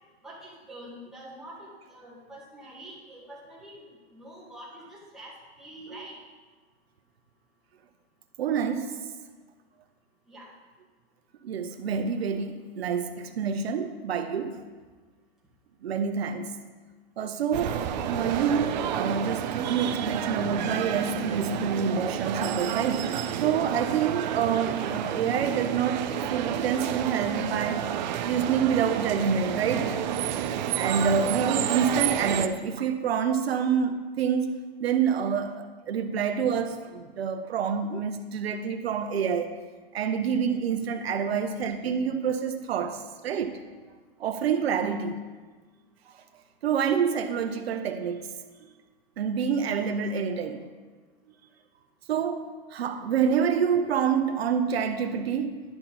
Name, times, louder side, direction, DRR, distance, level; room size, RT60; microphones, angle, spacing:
voice 1, 0.2-6.2 10.3-10.5, right 1 dB, ahead, 1.7 m, -46 dB
voice 2, 8.4-9.0 11.4-14.7 15.8-16.5 17.2-17.8 18.1-27.9 28.2-30.0 30.7-39.6 39.9-43.6 44.2-45.2 46.6-48.3 48.6-48.7 49.2-50.7 52.1-55.6, right 7 dB, 75° right, 0.8 m, -27 dB
sound 1, 17.5-32.5, right 9 dB, 45° right, 0.5 m, -30 dB
10.5 x 5.7 x 4.0 m
hypercardioid pair, 145°, 31 cm